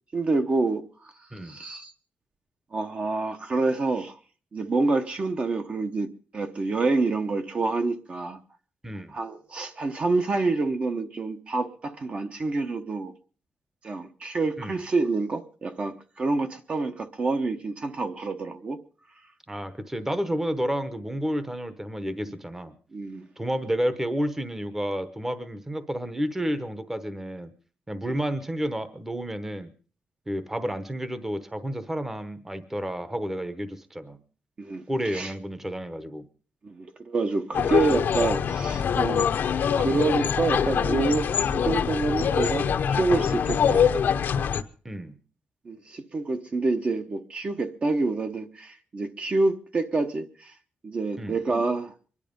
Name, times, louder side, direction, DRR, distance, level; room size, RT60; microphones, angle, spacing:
voice 1, 0.1-1.1 1.4-1.9 2.7-4.2 4.5-8.4 9.1-13.1 13.8-18.8 22.9-23.3 28.1-28.2 34.6-35.3 36.6-39.3 39.7-43.8 45.6-50.5 50.8-51.9, right 3 dB, 35° right, 1.0 m, -27 dB
voice 2, 8.8-9.2 14.6-14.8 19.5-22.7 23.4-27.5 27.9-29.7 30.3-34.2 34.9-36.3 44.8-45.2 51.2-51.4, equal, 10° right, 1.0 m, -30 dB
sound 1, 37.5-44.6, left 7 dB, 60° left, 0.9 m, -24 dB
24.0 x 11.0 x 5.3 m
wide cardioid pair, 175°, 4 cm